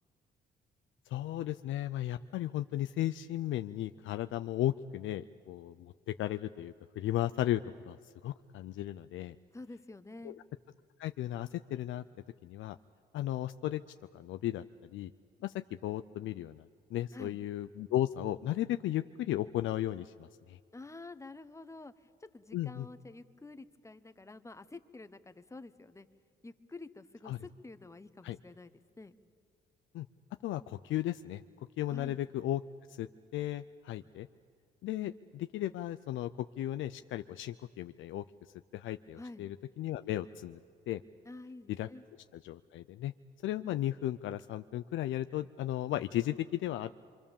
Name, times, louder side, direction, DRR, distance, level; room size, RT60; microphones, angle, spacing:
voice 1, 1.1-8.0 8.2-9.4 10.2-10.3 11.0-12.0 12.4-12.8 13.1-13.8 14.1-14.6 14.9-15.1 15.4-15.5 15.8-20.6 22.5-22.9 27.3-27.4 28.2-28.4 29.9-30.1 30.4-31.4 31.8-32.6 33.0-33.1 33.3-34.3 34.8-38.2 38.7-40.6 40.9-41.0 41.8-41.9 42.4-43.1 43.4-46.9, left 13 dB, 75° left, 10 dB, 0.5 m, -35 dB
voice 2, 9.5-10.4 17.1-17.4 20.7-26.1 26.4-29.1 31.9-32.2 39.2-39.5 41.2-42.0, left 2 dB, 15° left, 11 dB, 1.0 m, -49 dB
25.5 x 25.5 x 7.2 m, 2.2 s
cardioid pair, 90°, 20 cm